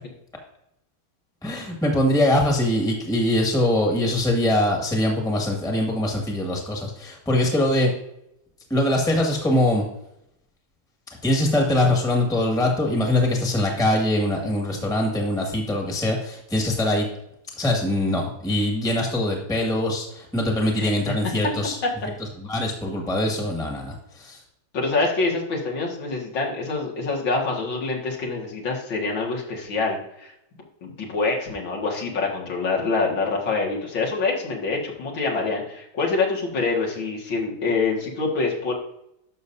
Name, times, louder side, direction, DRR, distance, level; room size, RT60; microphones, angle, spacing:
voice 1, 1.4-7.9 8.7-9.8 11.2-17.1 17.6-21.8 22.4-24.4, left 1 dB, ahead, 0 dB, 1.7 m, -22 dB
voice 2, 24.7-30.3 30.8-38.7, left 3 dB, 70° left, -2 dB, 2.6 m, -25 dB
11.5 x 6.8 x 2.7 m, 0.79 s
omnidirectional pair, 2.2 m